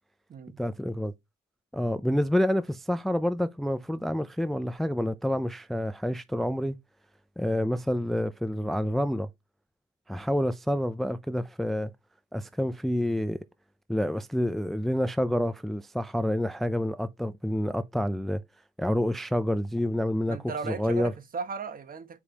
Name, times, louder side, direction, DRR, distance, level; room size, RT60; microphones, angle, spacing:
voice 1, 0.6-1.1 1.7-6.8 7.4-9.3 10.1-11.9 12.3-13.4 13.9-18.4 18.8-20.4 20.7-21.1, equal, ahead, 0.4 m, -28 dB
voice 2, 20.3-22.2, right 5 dB, 45° right, 1.1 m, -36 dB
7.0 x 4.7 x 2.8 m
cardioid pair, 90°, 20 cm